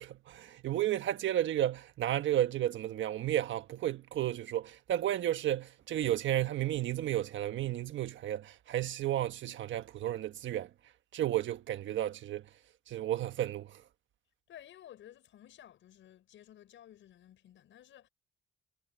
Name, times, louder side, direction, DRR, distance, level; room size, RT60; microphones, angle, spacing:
voice 1, 0.0-10.7 11.1-12.4 12.9-13.8, right 12 dB, 70° right, 1.4 m, -32 dB
voice 2, 14.5-18.1, left 11 dB, 75° left, 6.2 m, -54 dB
cardioid pair, 90°, 20 cm